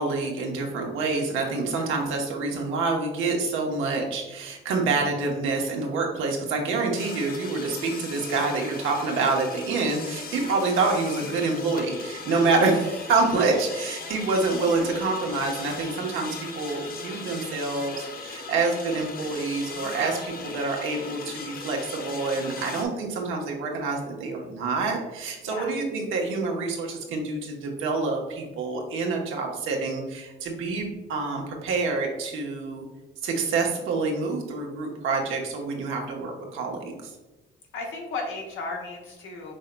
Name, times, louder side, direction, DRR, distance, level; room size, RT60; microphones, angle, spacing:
voice 1, 0.0-32.8 33.2-37.0, right 3 dB, 85° right, 0 dB, 1.0 m, -27 dB
voice 2, 6.2-6.6 10.6-10.7 20.3-20.6 25.4-25.8 37.7-39.5, left 3 dB, 85° left, 1 dB, 1.1 m, -36 dB
sound 1, 7.0-22.9, left 4 dB, 50° left, 0.6 m, -39 dB
5.3 x 3.9 x 2.2 m, 1.1 s
cardioid pair, 90°, 20 cm